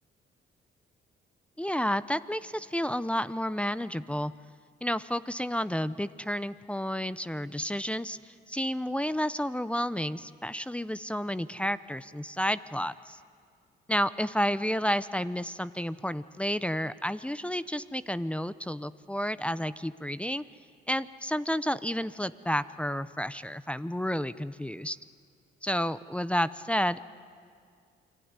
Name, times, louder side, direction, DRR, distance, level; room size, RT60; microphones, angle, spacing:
voice 1, 1.6-4.3 4.8-8.2 8.5-13.2 13.9-20.4 20.9-25.0 25.6-27.0, equal, 5° left, 15 dB, 0.6 m, -31 dB
28.5 x 21.5 x 9.6 m, 2.2 s
cardioid pair, 90°, 20 cm